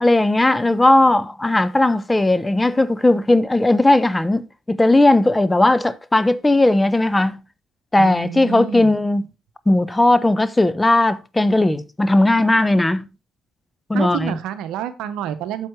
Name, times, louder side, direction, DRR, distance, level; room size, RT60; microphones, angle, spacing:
voice 1, 0.0-7.4 7.9-9.3 9.7-13.1 13.9-14.4, left 2 dB, 15° left, 0.9 m, -17 dB
voice 2, 8.0-8.9 13.9-15.7, right 10 dB, 70° right, 0.9 m, -28 dB
8.8 x 7.2 x 3.2 m
hypercardioid pair, 50°, 0 cm